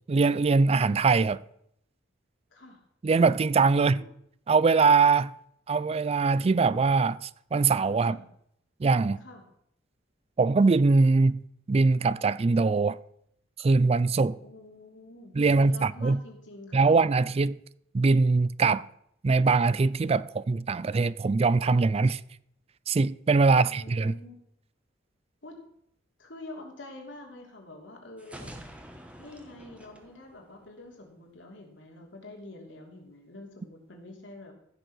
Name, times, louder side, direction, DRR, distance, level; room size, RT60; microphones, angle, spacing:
voice 1, 0.1-1.4 3.0-4.0 4.5-5.3 5.7-8.2 8.8-9.2 10.4-11.4 11.7-13.0 13.6-14.4 15.3-16.2 16.7-17.6 17.9-18.9 19.2-22.2 22.9-24.1, right 4 dB, 35° right, 0.4 m, -22 dB
voice 2, 2.5-2.8 3.8-4.1 8.0-8.2 9.2-9.4 14.4-16.9 23.5-24.4 25.4-25.6 26.2-28.5 29.2-34.5, left 2 dB, 70° left, 3.2 m, -47 dB
sound 1, 28.2-31.0, equal, 5° right, 1.5 m, -47 dB
15.0 x 6.6 x 6.2 m
head